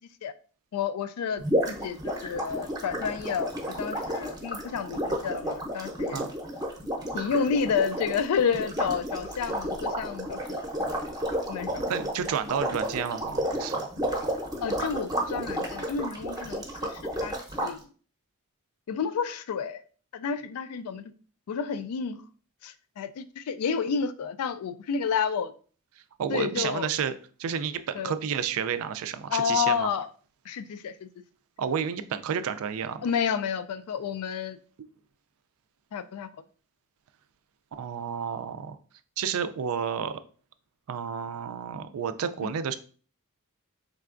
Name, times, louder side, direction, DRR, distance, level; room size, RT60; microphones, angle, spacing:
voice 1, 0.7-3.5 3.8-6.2 7.1-10.4 10.8-10.9 11.5-11.7 14.6-17.3 17.6-17.8 18.9-19.8 20.1-21.0 21.5-22.2 22.6-25.5 26.3-26.9 28.0-28.1 29.3-30.1 30.5-31.1 33.0-34.6 35.9-36.3 42.4-42.5, left 6 dB, 80° left, 13 dB, 0.4 m, -30 dB
sound 1, 1.4-17.7, equal, 15° right, 0.7 m, -32 dB
voice 2, 11.9-13.9 26.2-27.1 27.4-29.9 31.6-33.0 37.8-38.8 39.2-40.2 40.9-42.7, right 7 dB, 70° right, 11 dB, 0.4 m, -31 dB
3.8 x 3.3 x 2.4 m, 0.41 s
head